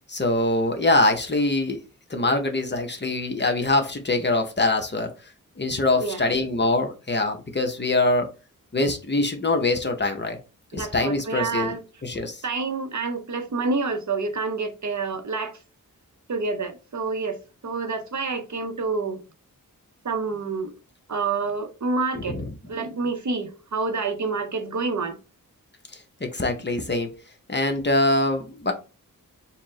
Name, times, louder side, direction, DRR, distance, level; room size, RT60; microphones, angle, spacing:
voice 1, 0.1-1.8 2.1-5.1 5.6-8.3 8.7-10.4 10.7-11.8 12.0-12.4 22.1-22.5 25.9-27.1 27.5-28.7, left 2 dB, 30° left, 0.7 m, -23 dB
voice 2, 10.7-11.8 12.4-15.6 16.3-17.4 17.6-19.2 20.0-20.7 21.1-22.4 22.7-25.2, right 4 dB, 55° right, 0.6 m, -28 dB
4.3 x 2.0 x 3.7 m
wide cardioid pair, 85°, 35 cm